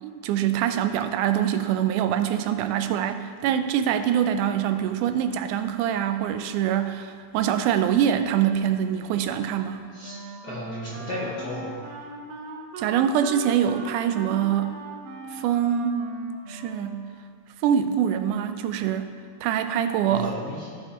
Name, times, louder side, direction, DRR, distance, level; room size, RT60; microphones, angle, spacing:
voice 1, 0.0-9.8 12.8-14.7 15.3-16.1 16.5-17.0 17.6-19.1 19.4-20.3, right 9 dB, 90° right, 9 dB, 2.0 m, -24 dB
Wind instrument woodwind instrument, 10.0-17.4, right 3 dB, 70° right, 1.8 m, -40 dB
voice 2, 10.4-11.8 20.1-20.7, left 1 dB, 55° left, -7 dB, 1.1 m, -34 dB
15.0 x 5.6 x 2.9 m, 2.1 s
omnidirectional pair, 3.4 m